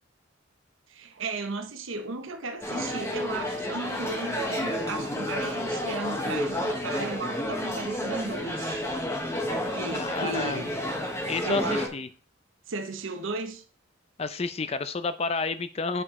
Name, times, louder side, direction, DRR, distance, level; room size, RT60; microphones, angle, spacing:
voice 1, 0.9-8.9 9.7-10.7 11.4-11.9 12.7-13.6, right 3 dB, 75° right, 0.8 m, -35 dB
sound 1, 2.6-11.9, left 1 dB, 15° left, 1.0 m, -30 dB
voice 2, 9.9-10.6 11.3-12.1 14.2-16.0, left 4 dB, 30° left, 0.4 m, -30 dB
8.1 x 4.8 x 3.6 m
head